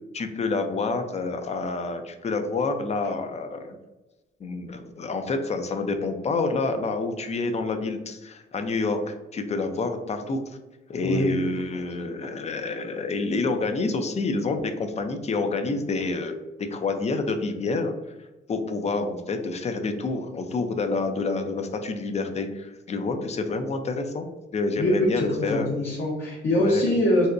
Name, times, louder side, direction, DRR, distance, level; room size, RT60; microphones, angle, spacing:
voice 1, 0.1-3.8 4.4-10.4 10.9-16.4 16.7-17.9 18.5-24.3 24.5-25.7 26.5-26.8, left 3 dB, 35° left, 7 dB, 0.5 m, -28 dB
voice 2, 11.0-11.4 24.8-27.3, left 1 dB, 55° left, -4 dB, 0.9 m, -23 dB
4.0 x 2.2 x 2.5 m, 1.1 s
cardioid pair, 90°, 20 cm